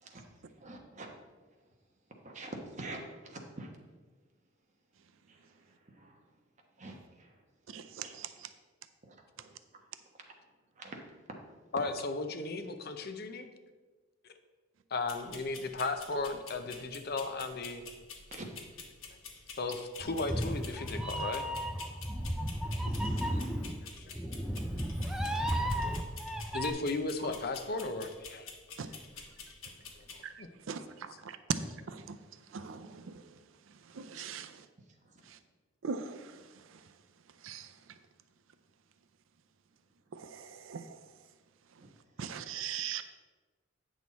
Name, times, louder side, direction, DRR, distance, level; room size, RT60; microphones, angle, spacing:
voice 1, 0.6-1.1 2.2-3.7 5.3-5.4 5.9-6.1 6.8-7.3 8.0-8.2 9.0-9.5 10.8-11.0 18.3-18.5 34.1-34.2 41.8-41.9, right 2 dB, 35° right, 2 dB, 1.1 m, -45 dB
voice 2, 7.7-8.3 28.8-28.9 30.2-30.3 30.7-30.8 31.3-31.4 31.9-32.2 32.5-33.1 33.9-34.5 35.8-36.3 37.4-37.7 40.1-40.8 42.2-43.0, right 7 dB, 75° right, 10 dB, 0.5 m, -40 dB
voice 3, 11.7-13.5 14.9-17.8 19.6-21.5 24.0-24.1 26.5-28.5 30.0-30.1 30.4-30.5 31.1-31.2, left 3 dB, 50° left, 8 dB, 0.7 m, -35 dB
sound 1, 15.1-30.2, left 4 dB, 90° left, 1.3 m, -49 dB
Meow, 20.0-26.7, equal, 5° right, 0.4 m, -34 dB
8.9 x 6.3 x 4.1 m, 1.3 s
head